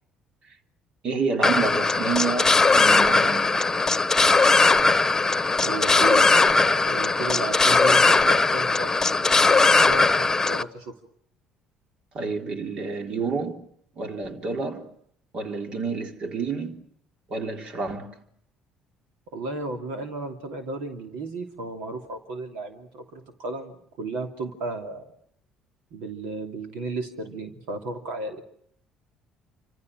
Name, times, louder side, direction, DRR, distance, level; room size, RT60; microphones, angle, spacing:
voice 1, 1.0-3.9 12.1-13.7 14.0-14.9 15.3-16.8 17.3-18.2, right 4 dB, 55° right, 3.5 m, -29 dB
sound 1, 1.4-10.6, left 3 dB, 20° left, 1.3 m, -19 dB
voice 2, 5.6-10.9 19.3-25.0 25.9-28.4, right 2 dB, 75° right, 2.8 m, -34 dB
28.5 x 26.5 x 6.4 m
hypercardioid pair, 60°, 2 cm